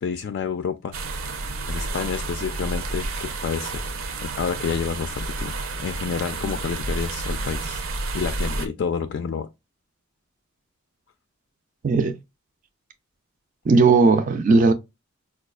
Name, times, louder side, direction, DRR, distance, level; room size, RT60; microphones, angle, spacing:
voice 1, 0.0-1.0 1.7-3.8 4.2-7.8 8.1-9.5, left 6 dB, 55° left, 0.3 m, -29 dB
sound 1, 0.9-8.7, right 3 dB, 75° right, 0.6 m, -30 dB
voice 2, 11.8-12.2 13.7-14.7, right 3 dB, 40° right, 0.4 m, -17 dB
4.7 x 2.3 x 2.3 m
head